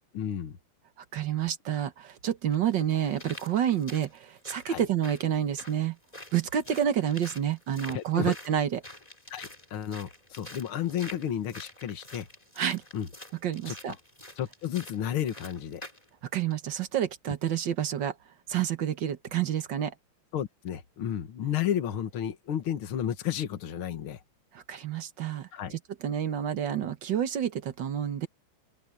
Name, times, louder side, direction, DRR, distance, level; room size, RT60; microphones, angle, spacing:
voice 1, 0.1-0.6 4.7-4.8 7.9-8.4 9.3-12.3 12.9-13.1 13.7-13.8 14.4-15.8 20.3-24.2 25.5-25.8, left 10 dB, 75° left, 2.2 m, -32 dB
voice 2, 1.1-6.0 6.3-8.8 12.6-12.8 13.4-13.9 16.3-18.1 18.5-19.9 24.5-28.3, right 10 dB, 60° right, 1.7 m, -29 dB
sound 1, 1.7-1.8 2.5-16.1 16.5-16.6, left 1 dB, 15° left, 4.2 m, -47 dB
open air
omnidirectional pair, 2.4 m